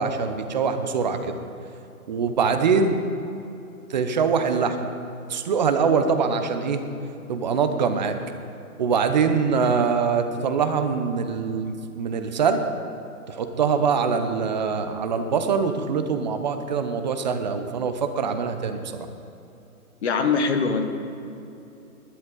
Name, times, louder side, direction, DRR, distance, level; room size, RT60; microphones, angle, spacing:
voice 1, 0.0-1.4 2.1-3.0 3.9-4.9 5.3-6.8 7.3-8.2 8.8-12.6 13.3-18.8, right 5 dB, 30° right, 7 dB, 0.8 m, -23 dB
voice 2, 20.0-20.8, left 5 dB, 45° left, 6 dB, 1.4 m, -22 dB
19.0 x 11.0 x 3.9 m, 2.8 s
hypercardioid pair, 155°, 45 cm